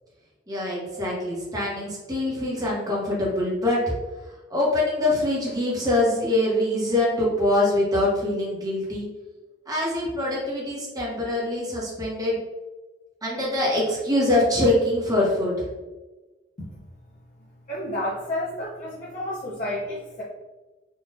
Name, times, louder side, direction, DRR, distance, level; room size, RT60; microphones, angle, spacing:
voice 1, 0.5-3.9 4.5-9.1 9.7-12.4 13.2-15.7, left 1 dB, 20° right, -5 dB, 1.0 m, -24 dB
voice 2, 17.7-20.2, left 1 dB, 45° left, -8 dB, 0.7 m, -30 dB
3.8 x 2.4 x 2.6 m, 1.2 s
head